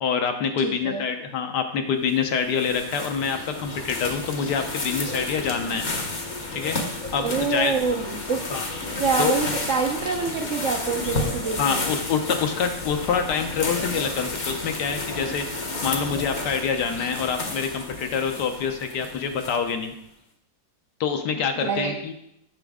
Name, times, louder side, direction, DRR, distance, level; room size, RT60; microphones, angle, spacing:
voice 1, 0.0-5.9 6.5-6.8 7.1-7.7 8.5-8.6 9.2-9.3 11.6-15.4 15.8-19.9 21.0-22.1, left 6 dB, 70° left, 6 dB, 1.2 m, -26 dB
voice 2, 0.6-1.1 7.2-8.4 9.0-11.9 21.6-21.9, right 5 dB, 65° right, 1 dB, 0.8 m, -26 dB
sound 1, 2.1-19.9, left 3 dB, 45° left, 0.6 m, -32 dB
7.3 x 6.1 x 3.5 m, 0.75 s
omnidirectional pair, 2.0 m